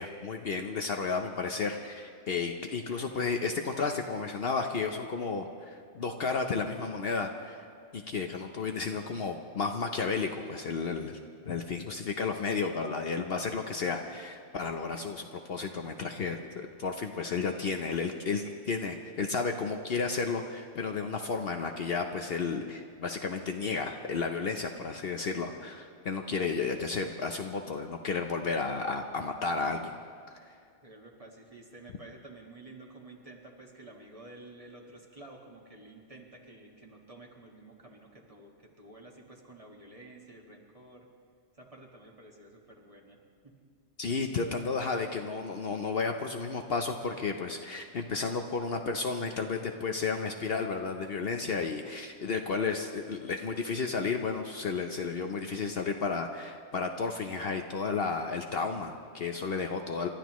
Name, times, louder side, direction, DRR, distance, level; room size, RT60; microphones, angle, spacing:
voice 1, 0.0-7.6 7.9-11.2 11.5-30.0 44.0-60.1, left 4 dB, 55° left, 4 dB, 0.9 m, -32 dB
voice 2, 30.8-41.1 41.5-43.2 43.4-43.5, right 2 dB, 30° right, -1 dB, 1.8 m, -51 dB
29.0 x 13.0 x 3.1 m, 2.3 s
omnidirectional pair, 1.3 m